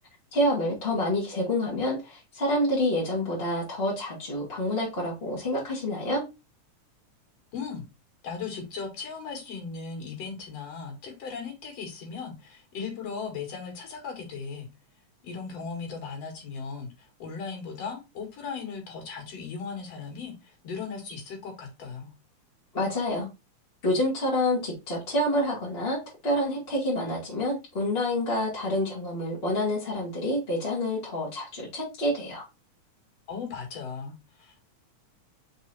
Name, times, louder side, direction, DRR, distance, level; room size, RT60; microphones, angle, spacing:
voice 1, 0.3-6.2 22.7-23.3 23.8-32.4, left 1 dB, 20° left, 2.1 m, -28 dB
voice 2, 7.5-7.8 8.2-14.7 15.2-22.1 33.3-34.7, left 5 dB, 60° left, 3.0 m, -37 dB
5.4 x 4.5 x 4.1 m
omnidirectional pair, 3.4 m